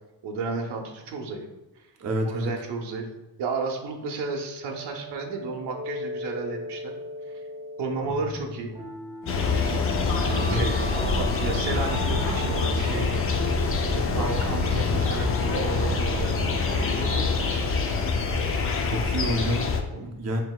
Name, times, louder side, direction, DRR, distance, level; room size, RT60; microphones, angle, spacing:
voice 1, 0.2-1.4 2.2-3.1 3.4-6.9 7.8-8.7 9.8-10.0 10.3-13.1 13.8-18.1 19.9-20.2, right 4 dB, 85° right, 2 dB, 0.8 m, -33 dB
voice 2, 2.0-2.5 10.4-10.7 18.8-19.7 20.0-20.4, equal, 40° right, 2 dB, 0.6 m, -28 dB
sound 1, 4.6-14.7, left 1 dB, 5° right, 0.9 m, -39 dB
Fixed-wing aircraft airplane, 9.2-17.1, equal, 80° left, 1.3 m, -34 dB
sound 2, 9.3-19.8, left 4 dB, 35° left, 0.4 m, -25 dB
5.8 x 2.7 x 2.3 m, 1.0 s
cardioid pair, 130°, 41 cm